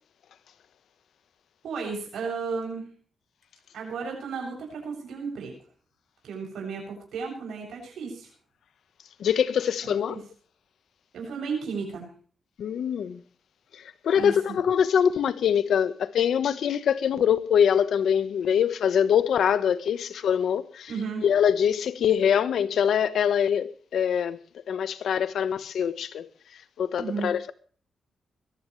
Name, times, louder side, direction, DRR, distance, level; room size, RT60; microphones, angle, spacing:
voice 1, 1.6-2.9 3.7-5.5 6.2-8.3 9.8-10.2 11.1-12.1 14.1-14.6 20.9-21.3 26.9-27.3, right 5 dB, 85° right, 7.8 m, -34 dB
voice 2, 9.2-10.2 12.6-13.2 14.0-20.9 21.2-26.3 26.8-27.5, left 8 dB, 80° left, 1.2 m, -24 dB
22.0 x 15.0 x 3.3 m
cardioid pair, 90°, 0 cm